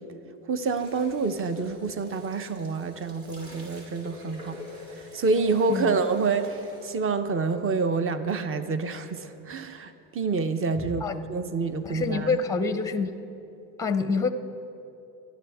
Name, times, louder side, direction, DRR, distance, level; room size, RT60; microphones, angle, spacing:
voice 1, 0.5-4.6 5.0-12.4, right 4 dB, 25° right, 10 dB, 1.0 m, -27 dB
sound 1, 0.6-6.9, left 1 dB, 45° right, 4.0 m, -46 dB
voice 2, 10.8-11.1 11.8-13.1 13.8-14.3, left 4 dB, 5° left, 10 dB, 0.7 m, -27 dB
24.0 x 11.5 x 3.6 m, 2.9 s
supercardioid pair, 85°, 47 cm